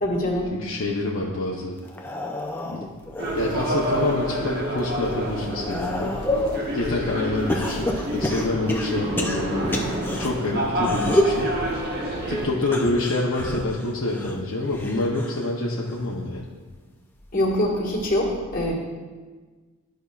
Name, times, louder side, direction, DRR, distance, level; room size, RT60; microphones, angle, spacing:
voice 1, 0.0-0.5 9.0-9.2 17.3-18.7, left 1 dB, 35° left, -3 dB, 1.6 m, -24 dB
voice 2, 0.5-1.8 2.6-2.9 3.3-6.2 6.7-9.9 10.2-11.6 12.3-16.5, left 2 dB, 60° left, -3 dB, 0.7 m, -27 dB
sound 1, 1.8-4.2 4.7-6.6 7.5-10.3 10.8-11.4 12.6-15.5 15.8-16.3 17.4-17.5, left 1 dB, 10° left, 0.4 m, -29 dB
sound 2, 3.2-12.5, equal, 45° right, 1.3 m, -28 dB
12.5 x 5.5 x 2.4 m, 1.4 s
head